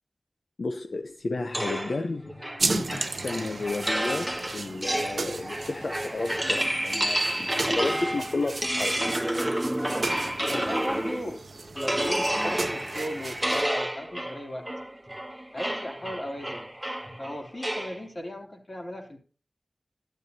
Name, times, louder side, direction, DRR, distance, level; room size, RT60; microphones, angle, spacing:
voice 1, 0.6-9.1 10.5-10.7, left 3 dB, 80° left, 6 dB, 0.7 m, -32 dB
sound 1, 1.5-11.3 11.8-18.0, right 1 dB, 10° right, 1.9 m, -30 dB
sound 2, 2.6-13.7, right 3 dB, 80° right, 0.7 m, -36 dB
voice 2, 10.4-11.4 11.7-14.7 15.5-16.7 17.2-19.2, equal, 50° left, 1 dB, 3.2 m, -37 dB
12.5 x 12.0 x 2.8 m, 0.39 s
wide cardioid pair, 50°, 0 cm